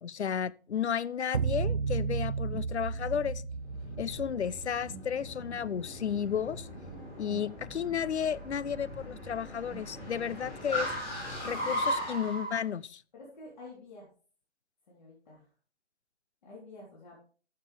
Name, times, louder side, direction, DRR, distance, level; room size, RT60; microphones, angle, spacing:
voice 1, 0.0-3.4 4.0-6.7 7.2-10.9 11.4-13.0, left 8 dB, 75° left, 0.5 m, -33 dB
sound 1, 1.3-5.8, right 5 dB, 50° right, 0.5 m, -33 dB
Bass guitar, 2.5-11.6, right 1 dB, 10° right, 1.2 m, -48 dB
Car, 3.7-12.6, equal, 15° left, 2.7 m, -38 dB
voice 2, 13.1-14.1 14.9-15.5 16.4-17.2, left 2 dB, 45° left, 3.7 m, -49 dB
14.0 x 6.6 x 3.4 m
figure-of-eight pair, 150°, 34 cm